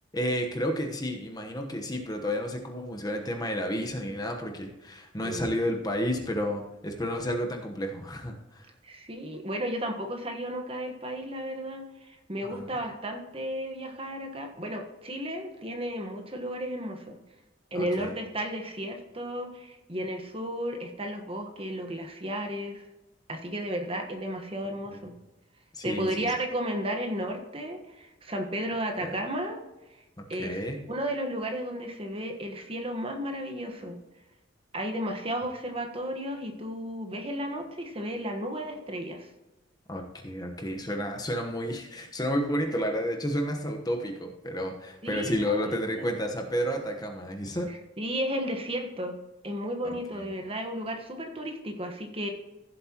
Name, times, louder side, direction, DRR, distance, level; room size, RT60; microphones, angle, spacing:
voice 1, 0.1-8.7 12.4-12.7 17.7-18.1 24.9-25.0 25.7-26.3 29.0-29.2 30.4-30.8 39.9-47.7 50.1-50.2, equal, 20° left, 3 dB, 1.1 m, -31 dB
voice 2, 8.8-17.2 17.7-22.8 23.3-25.2 25.8-29.6 29.9-30.0 30.3-30.6 30.9-34.0 34.7-39.3 45.0-46.1 47.7-49.2 49.4-52.3, equal, 30° right, 4 dB, 1.3 m, -33 dB
15.5 x 7.6 x 3.0 m, 1.0 s
head